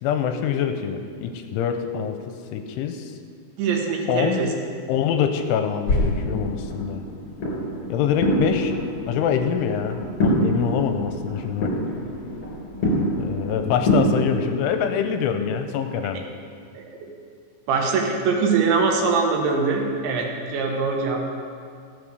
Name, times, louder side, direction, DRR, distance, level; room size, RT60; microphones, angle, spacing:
voice 1, 0.0-3.2 4.1-4.5 4.9-7.0 7.9-8.7 9.1-11.7 13.2-16.2, left 8 dB, 85° left, 6 dB, 3.0 m, -25 dB
voice 2, 3.6-4.5 16.7-17.1 17.7-21.2, right 4 dB, 75° right, 1 dB, 3.3 m, -23 dB
sound 1, 5.9-14.2, equal, 30° left, 3.3 m, -25 dB
15.0 x 8.3 x 6.5 m, 2.3 s
omnidirectional pair, 5.7 m